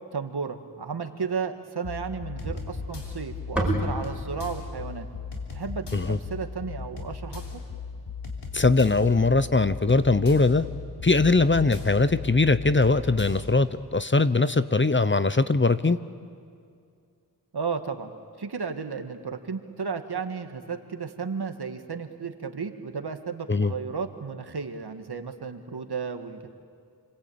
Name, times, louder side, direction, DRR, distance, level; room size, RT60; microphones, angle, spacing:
voice 1, 0.1-5.1 5.5-7.4 17.5-26.5, right 5 dB, 70° right, 7 dB, 1.9 m, -33 dB
sound 1, 1.8-13.6, left 4 dB, 85° left, 3.6 m, -37 dB
sound 2, 2.4-6.7, right 1 dB, 5° right, 6.6 m, -32 dB
voice 2, 8.5-10.7 11.0-16.0 23.5-23.7, left 3 dB, 30° left, 13 dB, 0.9 m, -21 dB
29.0 x 22.5 x 8.8 m, 2.3 s
cardioid pair, 45°, 41 cm